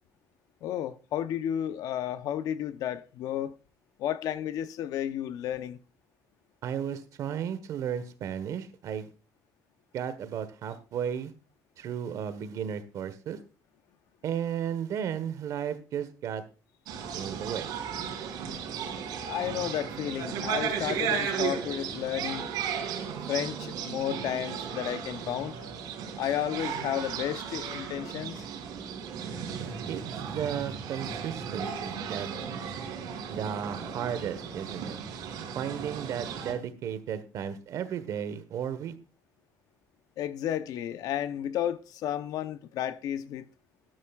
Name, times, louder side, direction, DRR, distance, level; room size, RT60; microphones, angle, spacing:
voice 1, 0.6-3.5 4.0-5.8 19.2-22.5 23.3-25.6 26.2-28.5 40.2-43.4, left 11 dB, 70° left, 0.8 m, -32 dB
voice 2, 6.6-9.1 9.9-11.3 11.8-13.4 14.2-16.4 17.1-17.7 29.6-32.3 33.3-35.0 35.5-38.9, right 8 dB, 60° right, 1.3 m, -34 dB
sound 1, 16.9-36.5, right 7 dB, 90° right, 3.5 m, -35 dB
13.0 x 12.5 x 2.4 m
cardioid pair, 165°, 7 cm